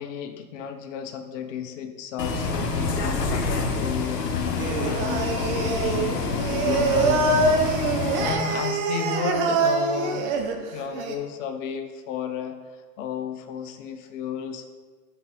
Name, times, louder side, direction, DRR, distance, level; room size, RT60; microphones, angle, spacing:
voice 1, 0.0-7.7 8.2-10.3 10.7-12.6 13.0-14.7, left 7 dB, 50° left, 7 dB, 0.8 m, -33 dB
Bus, 2.2-8.3, left 4 dB, 85° left, 0.9 m, -27 dB
Singing, 4.6-11.1, right 4 dB, 45° right, 0.9 m, -25 dB
5.5 x 5.5 x 3.8 m, 1.4 s
figure-of-eight pair, 95°, 48 cm